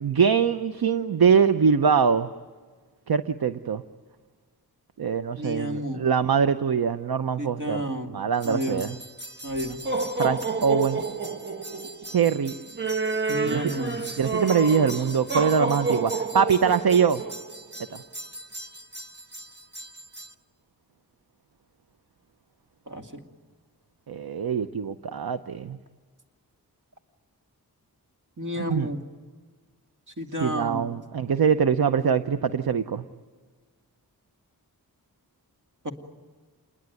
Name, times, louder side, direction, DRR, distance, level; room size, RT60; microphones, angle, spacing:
voice 1, 0.0-2.3 3.1-3.8 5.0-9.0 10.2-11.0 12.0-12.5 13.5-13.7 14.2-17.2 17.9-18.0 24.1-25.8 28.6-28.9 30.4-33.0, right 6 dB, 70° right, 11 dB, 0.8 m, -23 dB
voice 2, 5.4-6.0 7.4-8.1 8.4-8.8 9.4-9.8 13.3-14.0 22.9-23.2 28.4-29.0 30.2-30.8 35.8-35.9, equal, 50° right, 3 dB, 2.5 m, -31 dB
sound 1, 8.4-20.3, right 3 dB, 30° right, 1.2 m, -31 dB
28.0 x 21.5 x 9.4 m, 1.5 s
wide cardioid pair, 90°, 38 cm